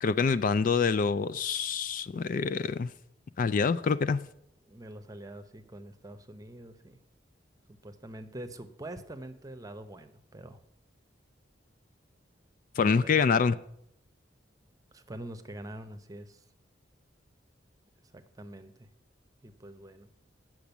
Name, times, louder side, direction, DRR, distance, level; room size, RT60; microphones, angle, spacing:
voice 1, 0.0-2.9 3.4-4.2 12.8-13.5, left 5 dB, 45° left, 15 dB, 0.3 m, -26 dB
voice 2, 4.6-7.0 7.7-10.6 13.0-13.4 14.9-16.4 18.0-18.9 19.4-20.1, right 1 dB, 20° right, 8 dB, 0.8 m, -45 dB
8.7 x 6.1 x 8.1 m, 0.74 s
head